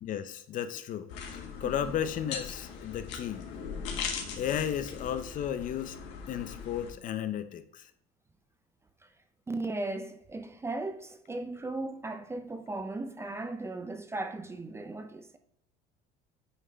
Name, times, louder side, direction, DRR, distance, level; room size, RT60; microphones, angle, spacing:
voice 1, 0.0-3.5 4.4-6.0 6.3-7.9, left 9 dB, 45° left, 0.6 m, -34 dB
sound 1, 1.1-6.9, left 6 dB, 80° left, 1.5 m, -39 dB
voice 2, 1.6-1.9 9.5-15.4, right 2 dB, 15° right, 0.5 m, -37 dB
8.5 x 3.6 x 3.4 m
cardioid pair, 130°, 18 cm